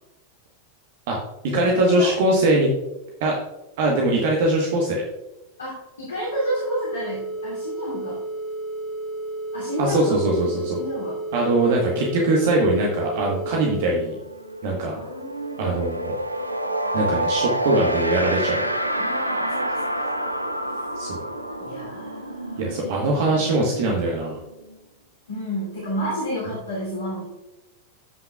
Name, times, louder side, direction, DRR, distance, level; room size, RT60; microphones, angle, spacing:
voice 1, 1.4-2.7 3.2-3.4 3.8-5.0 9.8-10.8 11.3-14.1 14.6-15.0 15.6-16.1 16.9-18.6 21.0-21.2 22.6-24.4, right 2 dB, 50° right, -1 dB, 1.3 m, -21 dB
voice 2, 5.6-8.2 9.5-10.0 10.7-11.2 14.9-15.8 19.0-19.8 21.6-22.7 25.3-27.2, equal, 70° left, -7 dB, 2.8 m, -30 dB
sound 1, 6.2-13.9, right 2 dB, ahead, 1.7 m, -32 dB
sound 2, 13.7-13.9 14.2-24.7, right 1 dB, 90° right, 0.6 m, -28 dB
14.5 x 5.7 x 2.4 m, 1.0 s
figure-of-eight pair, 90°, 0 cm